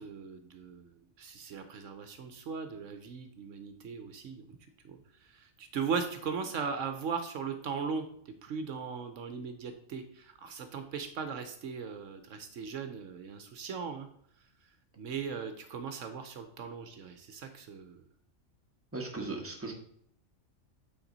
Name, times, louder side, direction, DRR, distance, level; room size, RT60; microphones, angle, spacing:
voice 1, 0.0-4.5 4.8-14.1 14.4-14.5 15.0-18.0, right 6 dB, 70° right, 8 dB, 1.0 m, -38 dB
voice 2, 18.9-19.7, right 3 dB, 10° right, 0 dB, 1.2 m, -37 dB
8.8 x 4.2 x 3.9 m, 0.67 s
omnidirectional pair, 1.4 m